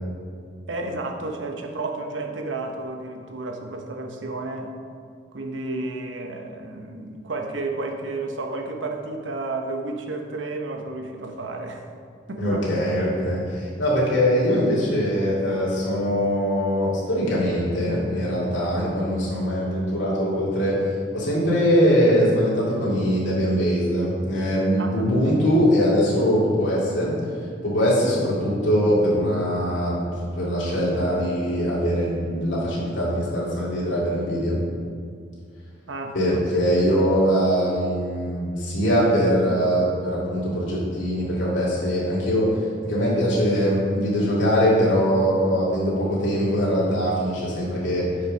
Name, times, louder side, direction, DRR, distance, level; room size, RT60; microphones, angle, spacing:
voice 1, 0.7-4.7 5.3-11.9 12.3-12.6 24.8-25.1 35.9-36.4, right 2 dB, 85° right, 3 dB, 0.9 m, -32 dB
voice 2, 12.4-20.7 21.1-27.1 27.6-30.0 30.3-34.6 36.1-42.5 42.8-48.1, equal, 90° left, -8 dB, 2.2 m, -22 dB
7.4 x 5.5 x 5.2 m, 2.2 s
head